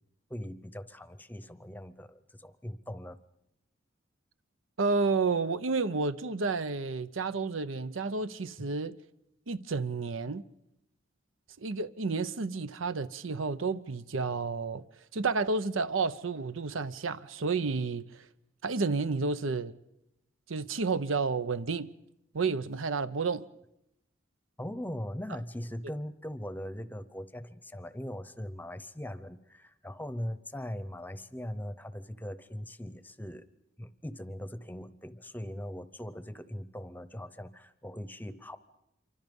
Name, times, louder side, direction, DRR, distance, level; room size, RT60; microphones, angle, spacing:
voice 1, 0.3-3.2 8.6-8.7 24.6-33.4 33.8-38.6, equal, 10° left, 0.8 m, -40 dB
voice 2, 4.8-9.0 9.5-10.4 11.6-14.8 15.1-18.3 18.6-19.8 20.5-21.9 22.3-23.4, right 4 dB, 90° right, 0.7 m, -31 dB
27.0 x 24.5 x 5.4 m
head